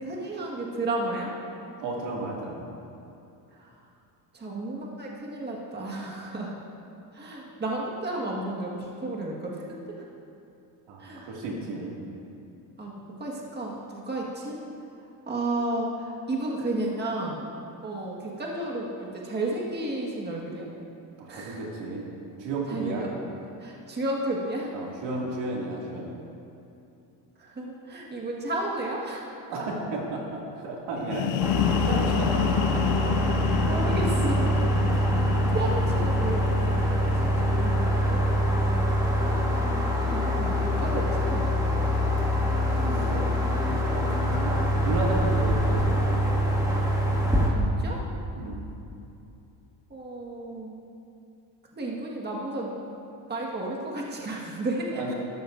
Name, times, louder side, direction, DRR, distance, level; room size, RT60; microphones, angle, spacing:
voice 1, 0.0-1.3 3.5-3.7 4.3-6.5 7.1-9.7 11.0-11.3 12.8-14.6 15.2-17.4 17.8-20.7 21.3-21.6 22.7-23.1 23.6-24.7 27.4-29.3 33.7-34.6 35.1-38.2 39.2-41.5 43.4-43.6 47.5-48.1 49.9-50.7 51.7-52.7 53.3-55.1, right 2 dB, 25° right, -3 dB, 1.6 m, -33 dB
voice 2, 1.8-2.6 10.9-12.0 21.2-22.0 22.4-23.0 24.7-26.1 29.5-33.2 42.7-43.3 43.6-46.5 48.1-48.6 54.9-55.1, right 2 dB, 80° right, -2 dB, 2.4 m, -33 dB
sound 1, 31.0-38.6, left 9 dB, 90° left, 0.6 m, -30 dB
sound 2, 31.4-47.5, equal, 10° right, 2.0 m, -24 dB
13.0 x 12.5 x 2.6 m, 2.8 s
cardioid pair, 110°, 43 cm